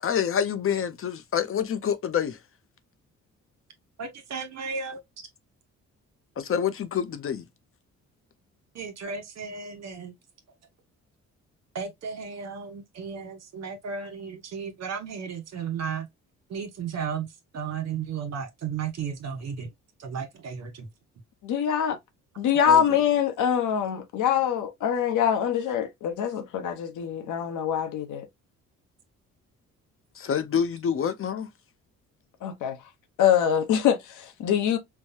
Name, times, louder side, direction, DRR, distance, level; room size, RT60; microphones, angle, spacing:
voice 1, 0.0-2.4 6.4-7.4 22.7-23.0 30.2-31.5, left 8 dB, 45° left, 0.6 m, -27 dB
voice 2, 4.0-5.0 8.7-10.1 11.7-16.1 16.5-19.7 20.0-20.9, right 6 dB, 60° right, 1.2 m, -34 dB
voice 3, 21.4-22.0 22.4-28.3 32.4-32.8 33.2-34.8, left 9 dB, 80° left, 0.9 m, -24 dB
4.6 x 2.2 x 2.7 m
cardioid pair, 90°, 30 cm